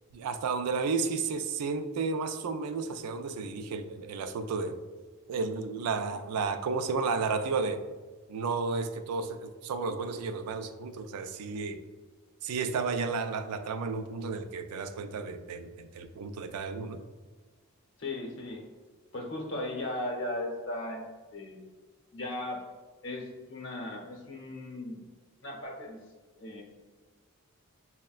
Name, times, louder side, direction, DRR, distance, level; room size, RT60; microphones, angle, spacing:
voice 1, 0.1-4.8 5.3-7.8 8.3-11.8 12.4-17.0, right 4 dB, 85° right, 9 dB, 0.3 m, -32 dB
voice 2, 18.0-18.6 19.1-21.0 21.3-21.6 22.1-22.6 23.0-25.1 25.4-26.0 26.4-26.6, left 1 dB, 55° left, 0 dB, 0.7 m, -37 dB
6.3 x 2.1 x 2.3 m, 1.4 s
head